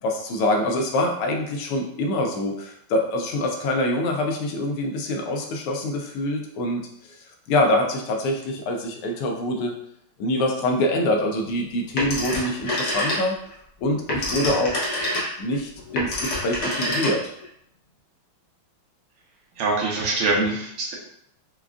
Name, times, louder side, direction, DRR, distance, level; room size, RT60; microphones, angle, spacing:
voice 1, 0.0-6.8 7.5-9.7 10.2-13.4 13.8-14.8 15.4-17.2 20.4-20.5, left 1 dB, 85° left, 2 dB, 1.6 m, -25 dB
Telephone, 12.0-13.5 13.9-17.5, left 1 dB, 60° left, 0.7 m, -27 dB
voice 2, 19.6-20.9, right 3 dB, 85° right, -3 dB, 1.7 m, -24 dB
5.0 x 2.3 x 2.3 m, 0.71 s
omnidirectional pair, 2.4 m